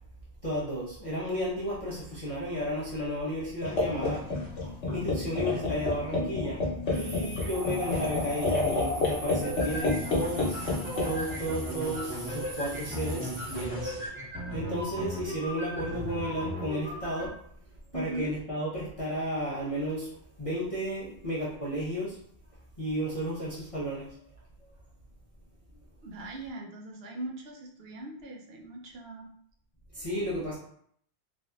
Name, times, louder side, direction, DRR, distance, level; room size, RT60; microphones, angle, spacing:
voice 1, 0.4-4.4 4.8-6.6 6.9-10.6 11.0-14.0 14.5-17.4 17.9-20.1 20.4-22.2 22.8-24.2 29.9-30.5, equal, 35° left, -8 dB, 0.7 m, -33 dB
sound 1, 3.6-14.1, left 2 dB, 75° left, 1.1 m, -31 dB
sound 2, 6.9-13.6, equal, 85° right, 1.2 m, -39 dB
sound 3, 9.4-17.3, equal, 10° right, 1.3 m, -37 dB
voice 2, 17.9-18.3 26.0-29.3, right 2 dB, 65° right, 0 dB, 0.8 m, -40 dB
3.4 x 2.5 x 2.3 m, 0.66 s
omnidirectional pair, 1.1 m